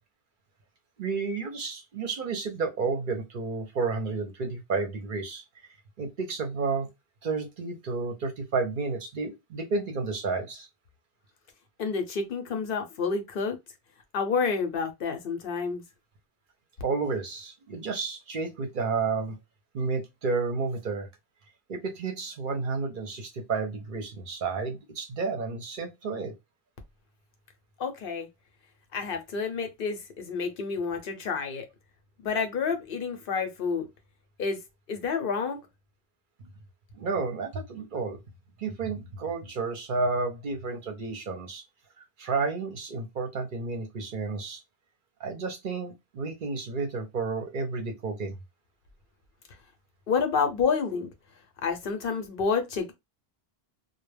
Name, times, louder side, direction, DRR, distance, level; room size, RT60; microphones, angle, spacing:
voice 1, 1.0-5.4 6.0-6.9 7.2-10.7 16.8-19.4 19.7-21.1 21.7-26.3 36.9-38.2 38.6-41.6 42.0-44.6 45.2-48.3, right 4 dB, 60° right, 0.7 m, -31 dB
voice 2, 11.8-13.6 14.1-15.8 27.8-28.3 28.9-31.7 32.2-33.9 34.4-34.6 34.9-35.6 50.1-51.1 51.6-52.9, left 5 dB, 65° left, 0.8 m, -29 dB
2.2 x 2.1 x 3.2 m
omnidirectional pair, 1.0 m